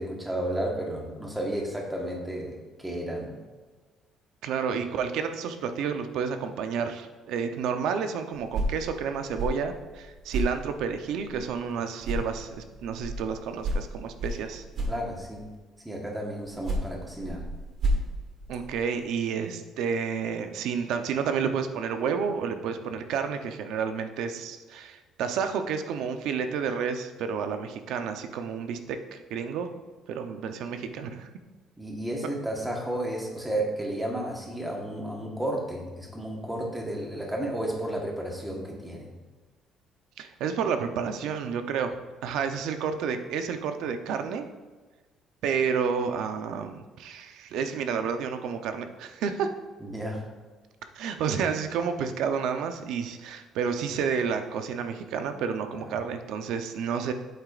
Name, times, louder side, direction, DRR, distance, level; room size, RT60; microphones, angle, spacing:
voice 1, 0.0-2.6 2.8-3.4 14.9-15.4 15.8-17.4 31.8-39.1 49.8-50.2 55.8-55.9, right 1 dB, 5° right, -1 dB, 1.3 m, -32 dB
voice 2, 4.4-14.6 18.5-29.7 30.1-31.3 40.2-44.4 45.4-49.5 50.9-57.1, right 6 dB, 70° right, 7 dB, 0.7 m, -30 dB
sound 1, 8.3-11.7 12.0-15.6 16.4-19.0, right 1 dB, 40° right, 1.2 m, -33 dB
8.8 x 8.0 x 2.5 m, 1.3 s
cardioid pair, 170°, 0 cm